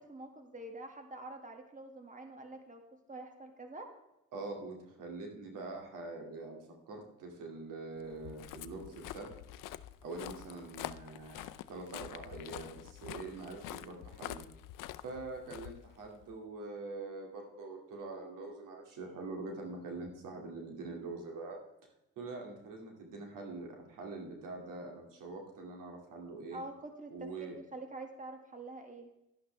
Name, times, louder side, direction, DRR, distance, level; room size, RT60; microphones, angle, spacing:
voice 1, 0.0-2.8 3.1-3.9 26.5-29.1, right 2 dB, 25° right, 4 dB, 1.9 m, -46 dB
voice 2, 4.3-9.3 10.0-14.5 15.0-21.6 22.2-26.6 27.1-27.6, right 3 dB, 90° right, 1 dB, 2.4 m, -44 dB
Walk footsteps, 8.1-16.3, left 14 dB, 90° left, 0.5 m, -47 dB
11.5 x 11.0 x 3.3 m, 0.91 s
cardioid pair, 70°, 31 cm